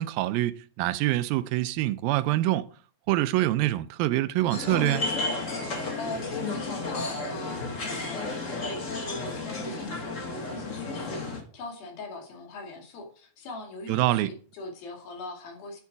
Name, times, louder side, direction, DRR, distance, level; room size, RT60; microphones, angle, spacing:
voice 1, 0.0-2.7 3.1-5.1 13.9-14.3, right 15 dB, 85° right, 2.4 m, -25 dB
sound 1, 4.5-11.4, left 3 dB, 40° left, 1.1 m, -32 dB
voice 2, 6.0-15.8, left 2 dB, 80° left, 4.1 m, -41 dB
10.0 x 7.3 x 4.7 m
omnidirectional pair, 4.2 m